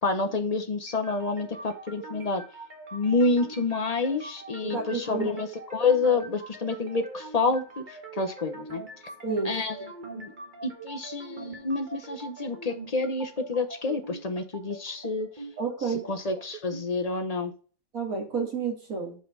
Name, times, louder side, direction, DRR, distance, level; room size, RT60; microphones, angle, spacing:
voice 1, 0.0-2.4 2.9-8.8 9.4-9.8 10.1-10.3 10.6-15.3 16.1-17.5, left 3 dB, 45° left, 7 dB, 0.5 m, -28 dB
sound 1, 0.9-16.9, right 3 dB, 30° right, 1.4 m, -43 dB
voice 2, 4.6-5.3 9.2-9.5 15.6-16.1 17.9-19.2, right 5 dB, 55° right, 0 dB, 2.8 m, -30 dB
5.8 x 5.2 x 5.3 m, 0.39 s
omnidirectional pair, 1.8 m